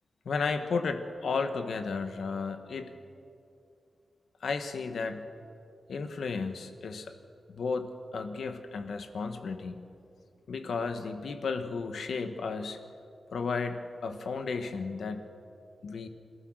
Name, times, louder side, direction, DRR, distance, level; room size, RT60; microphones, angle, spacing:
voice 1, 0.2-2.9 4.4-5.2 5.9-7.1 7.5-9.8 10.5-12.8 13.3-15.2 15.8-16.1, left 4 dB, 85° left, 7 dB, 1.5 m, -33 dB
28.0 x 14.5 x 6.5 m, 2.5 s
wide cardioid pair, 155°, 0 cm